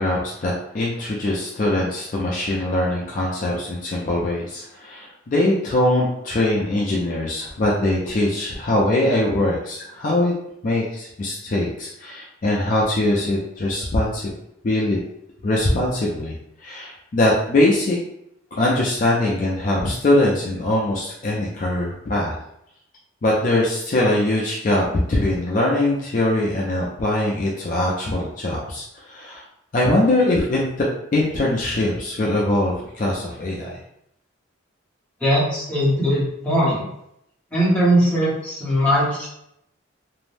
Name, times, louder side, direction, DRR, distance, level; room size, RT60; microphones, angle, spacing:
voice 1, 0.0-10.3 10.6-14.3 14.6-15.0 15.4-18.0 18.5-22.4 23.2-29.4 29.7-33.8, left 1 dB, 40° left, -4 dB, 0.4 m, -22 dB
voice 2, 35.2-36.8 37.5-39.3, equal, 5° left, -8 dB, 0.8 m, -20 dB
2.5 x 2.0 x 3.2 m, 0.78 s
head